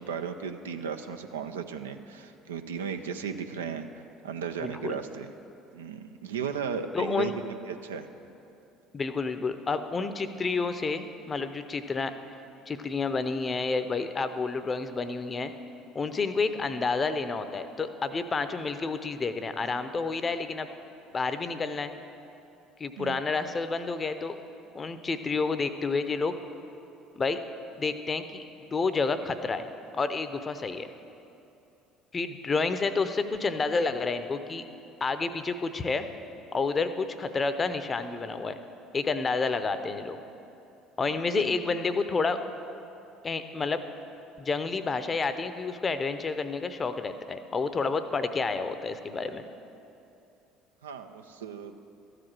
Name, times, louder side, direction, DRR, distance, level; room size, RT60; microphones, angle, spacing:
voice 1, 0.0-5.3 5.7-7.3 7.6-8.1 23.0-23.2 41.1-41.4 50.8-51.8, right 6 dB, 85° right, 7 dB, 0.4 m, -35 dB
voice 2, 4.6-5.0 6.9-7.3 8.9-12.1 12.7-15.5 15.9-20.7 21.1-21.9 22.8-24.3 24.7-26.4 27.2-27.4 27.8-28.5 28.7-29.7 29.9-30.9 32.1-34.6 35.0-36.1 36.5-38.6 38.9-40.2 41.0-42.4 43.2-43.8 44.4-49.5, left 4 dB, 30° left, 10 dB, 0.6 m, -29 dB
13.5 x 5.0 x 7.4 m, 2.8 s
hypercardioid pair, 60°, 0 cm